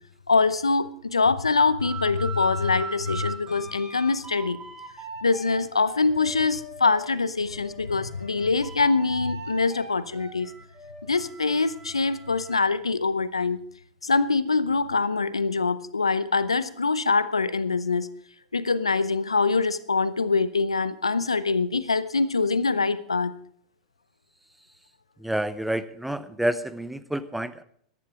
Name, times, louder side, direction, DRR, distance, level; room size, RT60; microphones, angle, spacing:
voice 1, 0.3-4.6 5.2-10.5 11.1-13.6 14.0-18.1 18.5-23.3, left 4 dB, 90° left, 16 dB, 0.7 m, -24 dB
sound 1, 1.8-7.1 7.5-12.8, right 3 dB, 20° right, 5.8 m, -40 dB
voice 2, 25.2-27.6, right 1 dB, 5° right, 14 dB, 0.9 m, -29 dB
14.0 x 11.5 x 4.9 m, 0.62 s
figure-of-eight pair, 90°, 3 cm